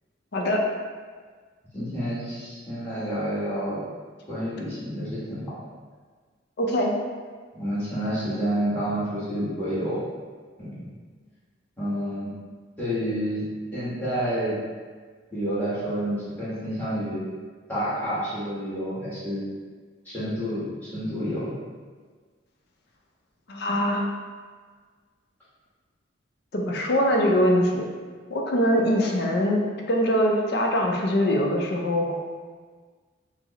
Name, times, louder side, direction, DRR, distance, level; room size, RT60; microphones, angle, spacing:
voice 1, 0.3-0.6 6.6-6.9 23.5-24.0 26.5-27.8 28.3-29.6 29.9-32.2, equal, 55° left, 0 dB, 0.5 m, -22 dB
voice 2, 1.7-3.8 4.3-5.4 7.5-10.0 10.6-10.7 11.8-12.3 12.8-13.4 13.7-14.6 15.3-17.2 17.7-19.5 20.0-20.6 20.9-21.5, equal, 10° left, -11 dB, 1.3 m, -29 dB
4.8 x 2.0 x 2.9 m, 1.5 s
head